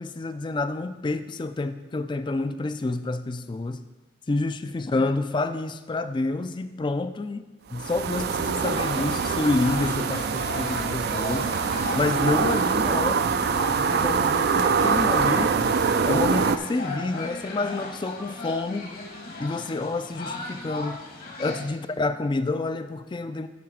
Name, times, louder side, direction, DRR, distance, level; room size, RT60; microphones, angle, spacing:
voice 1, 0.0-3.8 4.3-7.4 7.7-11.5 11.9-15.8 16.0-18.9 19.4-21.0 21.4-23.5, left 2 dB, 25° left, 11 dB, 0.4 m, -28 dB
sound 1, 7.7-16.6, right 6 dB, 60° right, 0.4 m, -24 dB
sound 2, 8.6-21.7, left 2 dB, 50° left, 1.3 m, -37 dB
12.0 x 4.0 x 4.9 m, 1.1 s
head